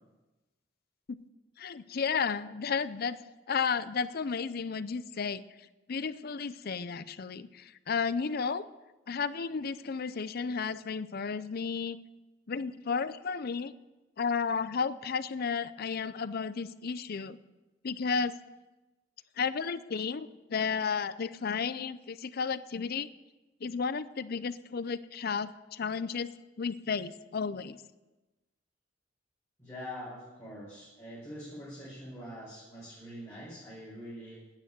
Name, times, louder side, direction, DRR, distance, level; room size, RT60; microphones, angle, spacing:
voice 1, 1.6-3.2 3.5-5.4 5.9-8.6 9.1-12.0 12.5-13.7 14.2-17.4 17.8-18.4 19.4-23.1 23.6-27.8, left 5 dB, 55° left, 15 dB, 0.5 m, -33 dB
voice 2, 29.6-34.4, equal, 15° left, -9 dB, 4.6 m, -44 dB
9.4 x 9.0 x 9.2 m, 1.1 s
head